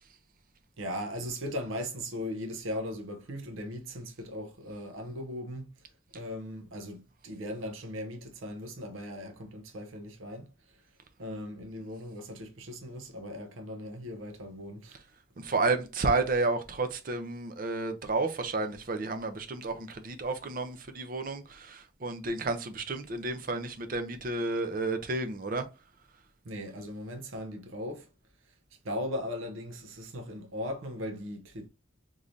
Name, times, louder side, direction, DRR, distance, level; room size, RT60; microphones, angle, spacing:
voice 1, 0.8-5.7 6.1-10.5 11.2-15.0 26.4-28.1 28.8-31.7, equal, 85° right, 0.8 m, -38 dB
voice 2, 15.4-25.7, right 3 dB, 45° right, 0.5 m, -31 dB
3.7 x 3.2 x 2.6 m
head